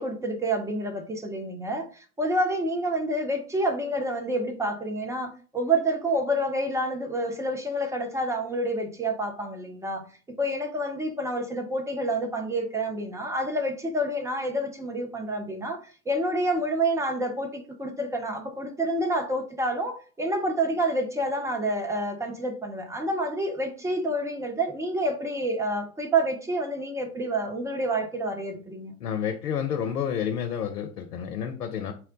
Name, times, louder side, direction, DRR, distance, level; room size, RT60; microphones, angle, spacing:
voice 1, 0.0-10.1 10.4-28.9, right 1 dB, 5° right, 0.4 m, -28 dB
voice 2, 29.0-31.9, left 8 dB, 75° left, 0.7 m, -30 dB
4.4 x 2.1 x 3.7 m
figure-of-eight pair, 80°, 46 cm